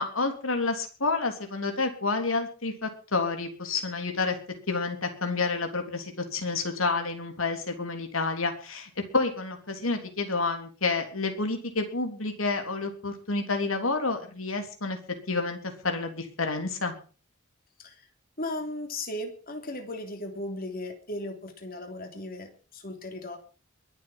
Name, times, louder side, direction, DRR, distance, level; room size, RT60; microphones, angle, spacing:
voice 1, 0.0-4.4 4.7-15.0 15.3-16.9, left 3 dB, 85° left, 5 dB, 3.4 m, -29 dB
voice 2, 18.4-23.4, left 1 dB, 45° left, 4 dB, 3.3 m, -36 dB
22.5 x 7.7 x 6.1 m, 0.38 s
head